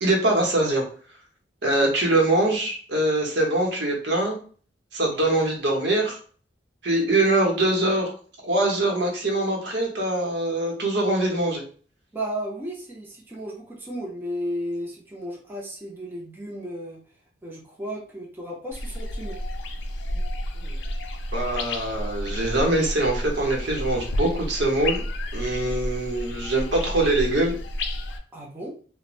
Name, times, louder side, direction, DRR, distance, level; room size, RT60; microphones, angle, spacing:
voice 1, 0.0-0.8 1.6-4.4 4.9-6.2 6.8-8.1 8.4-11.6 20.1-20.2 20.6-20.8 21.3-25.0 25.3-27.5, right 2 dB, 70° right, 0 dB, 0.8 m, -23 dB
voice 2, 12.1-17.0 17.4-19.4 28.3-28.8, equal, 10° right, -3 dB, 0.6 m, -34 dB
sound 1, 18.7-28.2, left 1 dB, 70° left, 0.4 m, -31 dB
3.0 x 2.1 x 2.4 m, 0.43 s
head